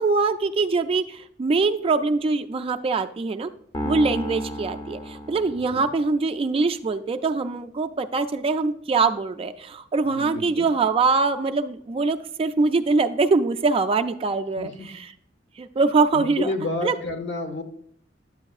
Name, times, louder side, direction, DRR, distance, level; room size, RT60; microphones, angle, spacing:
voice 1, 0.0-3.5 3.9-15.1 15.6-16.5 16.8-17.0, right 4 dB, 30° right, 8 dB, 0.3 m, -23 dB
sound 1, 3.7-6.1, left 1 dB, 20° left, 0.6 m, -32 dB
voice 2, 10.0-10.7 14.6-14.9 16.1-17.6, left 2 dB, 65° left, 6 dB, 0.9 m, -30 dB
9.6 x 7.3 x 2.4 m, 0.68 s
head